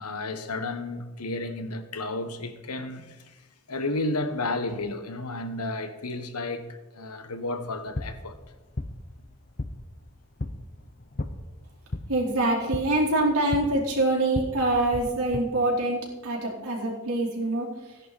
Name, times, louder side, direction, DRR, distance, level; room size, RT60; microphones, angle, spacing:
voice 1, 0.0-3.4 3.7-8.4, left 2 dB, 90° left, 1.3 m, -32 dB
sound 1, 7.7-15.4, left 2 dB, 40° left, 0.8 m, -37 dB
voice 2, 12.1-17.7, right 2 dB, 80° right, 4.2 m, -25 dB
16.5 x 10.5 x 4.2 m
head